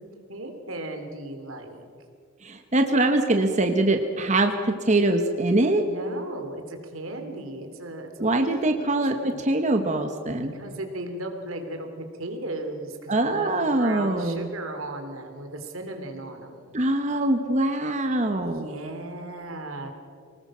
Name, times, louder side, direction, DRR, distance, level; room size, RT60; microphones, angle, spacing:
voice 1, 0.3-1.9 5.8-9.4 10.4-16.6 18.4-19.9, right 2 dB, 90° right, 5 dB, 2.9 m, -36 dB
voice 2, 2.4-5.8 8.2-10.5 13.1-14.5 16.7-18.7, right 2 dB, 35° right, 5 dB, 1.2 m, -23 dB
25.0 x 19.0 x 6.2 m, 2.2 s
head